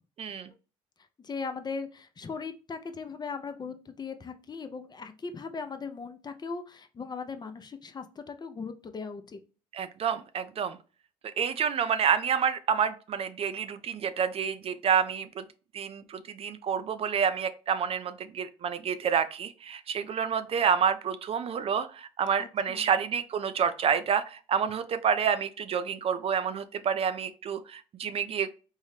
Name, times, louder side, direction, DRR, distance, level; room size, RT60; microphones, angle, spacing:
voice 1, 0.2-0.5 9.7-10.8 11.4-15.4 15.7-28.5, right 7 dB, 45° right, 11 dB, 0.4 m, -28 dB
voice 2, 1.2-9.4 22.4-22.9, left 5 dB, 30° left, 8 dB, 0.5 m, -38 dB
3.6 x 2.1 x 3.2 m, 0.34 s
supercardioid pair, 65°, 14 cm